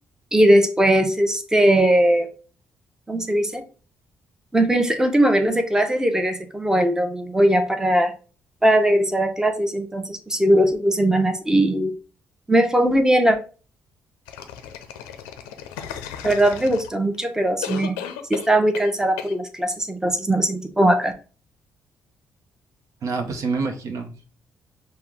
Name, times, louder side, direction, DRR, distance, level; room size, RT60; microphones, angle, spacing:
voice 1, 0.3-2.3 3.1-3.6 4.5-8.1 8.6-11.9 12.5-13.4 16.2-18.0 18.3-21.1, right 1 dB, 10° right, 6 dB, 0.8 m, -19 dB
sound 1, 14.3-17.2 17.6-18.9 19.2-19.3, left 9 dB, 80° left, 0.5 m, -35 dB
voice 2, 23.0-24.3, right 4 dB, 60° right, 4 dB, 0.8 m, -27 dB
5.7 x 2.2 x 3.5 m, 0.37 s
hypercardioid pair, 45°, 6 cm